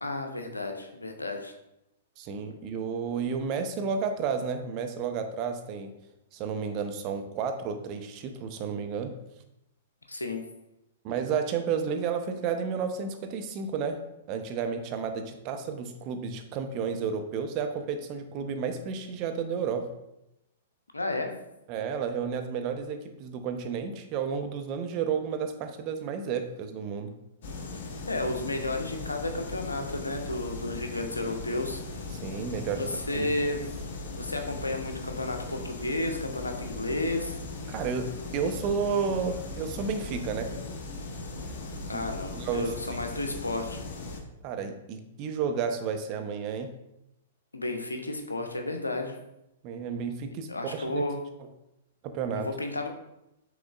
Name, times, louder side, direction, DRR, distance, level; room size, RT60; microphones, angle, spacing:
voice 1, 0.0-1.5 10.1-10.4 20.9-21.3 27.7-27.8 28.1-31.8 32.8-33.7 34.2-37.4 41.9-43.8 47.5-49.2 50.5-51.2 52.4-52.9, left 2 dB, 90° left, 4 dB, 0.7 m, -32 dB
voice 2, 2.2-5.9 6.3-9.1 11.0-14.0 14.3-19.9 21.7-27.1 32.2-33.3 37.7-40.5 41.9-42.0 42.3-43.0 44.4-46.7 49.6-51.0 52.0-52.5, right 6 dB, 40° right, 6 dB, 0.6 m, -32 dB
sound 1, 27.4-44.2, left 3 dB, 55° left, 1.0 m, -38 dB
6.1 x 3.5 x 2.4 m, 0.86 s
figure-of-eight pair, 110°, 0 cm